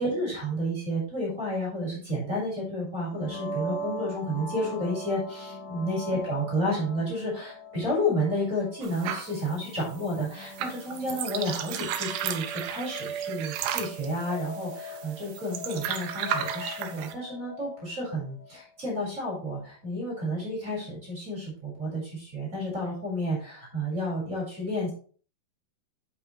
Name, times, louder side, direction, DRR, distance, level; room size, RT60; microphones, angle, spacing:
voice 1, 0.0-24.9, equal, 20° right, -3 dB, 4.6 m, -31 dB
sound 1, 3.1-18.7, right 1 dB, 55° left, 2.3 m, -41 dB
sound 2, 8.8-17.1, right 9 dB, 75° right, 2.4 m, -35 dB
8.4 x 7.8 x 3.2 m, 0.43 s
omnidirectional pair, 4.5 m